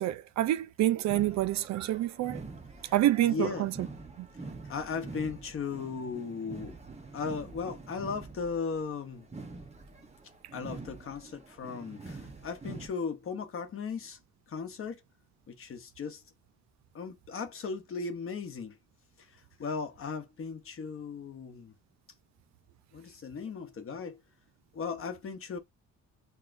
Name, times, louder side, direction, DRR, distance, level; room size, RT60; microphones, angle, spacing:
voice 1, 0.0-2.4 2.9-3.9 4.2-4.3, right 13 dB, 65° right, 0.4 m, -27 dB
sound 1, 1.1-12.9, right 3 dB, 20° right, 1.0 m, -45 dB
voice 2, 3.2-3.7 4.6-6.7 7.1-9.3 10.5-14.2 14.5-15.0 15.5-16.2 16.9-18.8 19.6-21.7 22.9-24.2 24.7-25.6, left 5 dB, 45° left, 0.9 m, -37 dB
5.8 x 2.2 x 2.5 m
cardioid pair, 90°, 30 cm